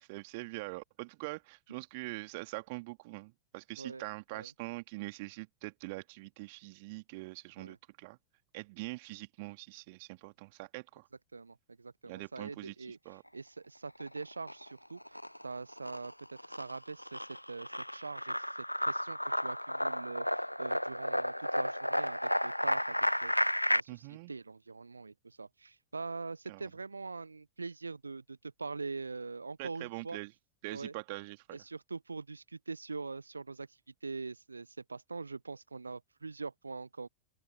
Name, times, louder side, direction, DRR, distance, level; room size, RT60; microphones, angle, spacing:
voice 1, 0.0-8.2 8.5-11.1 12.1-13.2 23.9-24.3 26.5-26.6 29.6-30.3 30.6-31.6, right 25 dB, 50° right, 2.3 m, -43 dB
voice 2, 11.3-13.0 13.3-18.5 18.8-30.2 30.7-30.9 31.5-33.7 34.0-37.1, right 4 dB, 80° right, 0.6 m, -43 dB
sound 1, 13.9-14.7 15.0-23.8, equal, 90° left, 0.7 m, -33 dB
open air
figure-of-eight pair, 90°, 0 cm